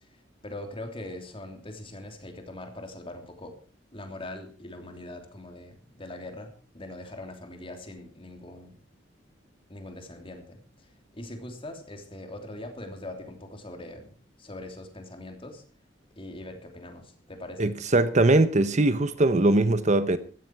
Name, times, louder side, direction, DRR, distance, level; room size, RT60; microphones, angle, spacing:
voice 1, 0.4-3.5 3.9-8.7 9.7-10.6 11.1-14.1 14.4-15.6 16.2-17.7, left 1 dB, 30° left, 3.1 m, -41 dB
voice 2, 17.6-20.2, right 2 dB, 40° right, 0.9 m, -21 dB
15.5 x 13.5 x 4.7 m
head